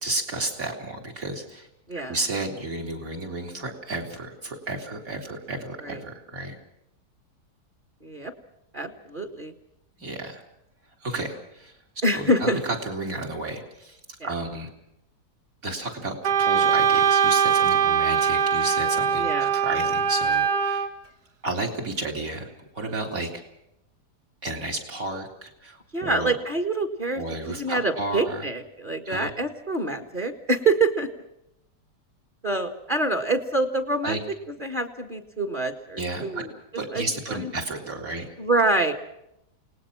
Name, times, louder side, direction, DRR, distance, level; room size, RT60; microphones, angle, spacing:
voice 1, 0.0-1.7 2.1-6.6 10.0-10.4 11.0-11.8 12.1-14.7 15.6-20.9 21.4-23.4 24.4-26.4 27.1-28.5 29.1-29.3 34.0-34.2 36.0-36.4 36.8-38.3, right 2 dB, 55° right, 2 dB, 4.0 m, -32 dB
voice 2, 8.0-8.3 8.7-9.5 12.0-12.6 14.2-14.3 19.2-19.5 25.9-27.2 27.5-31.1 32.4-34.2 34.6-36.5 36.9-37.5 38.4-38.9, right 2 dB, 30° right, 6 dB, 1.9 m, -26 dB
Wind instrument woodwind instrument, 16.2-20.9, right 7 dB, 75° right, 2.0 m, -22 dB
28.5 x 19.0 x 6.0 m, 0.81 s
omnidirectional pair, 1.8 m